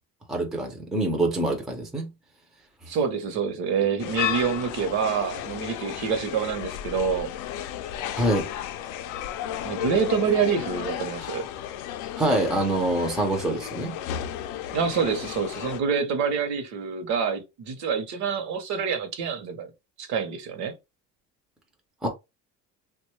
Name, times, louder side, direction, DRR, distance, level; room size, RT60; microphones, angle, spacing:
voice 1, 0.3-2.1 8.2-8.5 12.2-13.9 22.0-22.1, right 1 dB, ahead, 0.4 m, -25 dB
voice 2, 2.9-7.3 9.6-11.5 14.7-19.7 20.0-20.7, right 6 dB, 60° right, 0.8 m, -27 dB
sound 1, 4.0-15.8, left 11 dB, 65° left, 0.5 m, -33 dB
3.4 x 2.2 x 3.0 m
cardioid pair, 165°, 32 cm